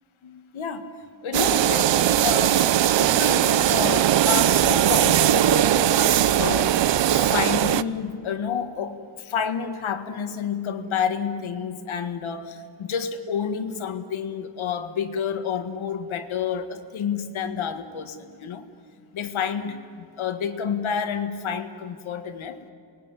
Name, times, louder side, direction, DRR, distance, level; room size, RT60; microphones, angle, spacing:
voice 1, 0.2-6.8 7.1-18.7 19.1-22.6, left 7 dB, 80° left, 7 dB, 1.8 m, -30 dB
sound 1, 1.3-7.8, right 11 dB, 65° right, 0.7 m, -20 dB
27.5 x 21.0 x 9.8 m, 2.4 s
wide cardioid pair, 130°, 47 cm